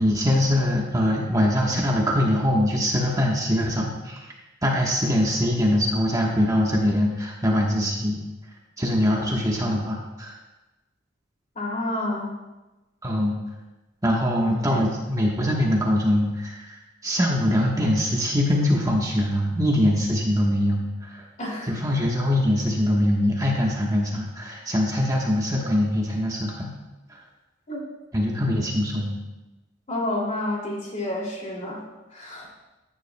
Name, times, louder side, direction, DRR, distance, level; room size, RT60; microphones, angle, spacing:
voice 1, 0.0-4.3 4.6-8.2 8.8-10.3 13.0-13.3 14.0-16.8 17.0-21.2 21.7-26.7 28.1-29.1, left 1 dB, 20° right, -2 dB, 1.1 m, -23 dB
voice 2, 11.5-12.3 14.4-14.8 21.4-21.7 27.7-27.8 29.9-31.8 32.1-32.5, left 1 dB, 40° left, -3 dB, 2.6 m, -29 dB
14.5 x 9.9 x 2.2 m, 1.1 s
head